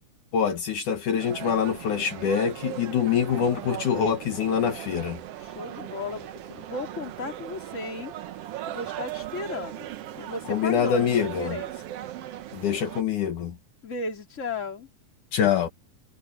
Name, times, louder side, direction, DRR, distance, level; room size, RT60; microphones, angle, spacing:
voice 1, 0.3-5.2 10.5-11.6 12.5-13.6 15.3-15.7, left 7 dB, 65° left, 3.0 m, -25 dB
sound 1, 1.2-13.0, right 12 dB, 70° right, 1.5 m, -38 dB
voice 2, 5.4-8.1 8.7-11.7 13.8-14.9, left 3 dB, 20° left, 3.1 m, -35 dB
omnidirectional pair, 3.9 m